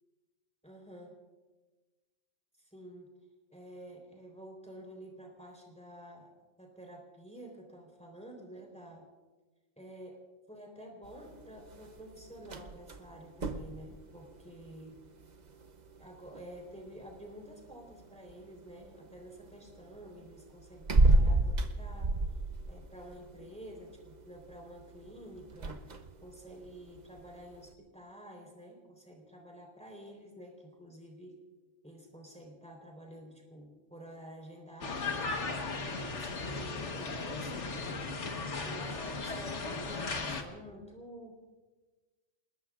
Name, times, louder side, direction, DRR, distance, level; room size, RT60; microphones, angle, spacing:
voice 1, 0.6-1.1 2.6-3.1 3.5-6.3 6.6-9.0 9.8-10.2 10.5-15.0 16.0-22.1 22.7-25.8 26.2-31.4 31.8-41.3, equal, 5° left, 0 dB, 3.9 m, -50 dB
sound 1, 11.0-27.7, right 2 dB, 35° right, 0.9 m, -34 dB
sound 2, 34.8-40.4, left 3 dB, 60° left, 1.7 m, -36 dB
27.5 x 20.5 x 2.5 m, 1.3 s
omnidirectional pair, 1.4 m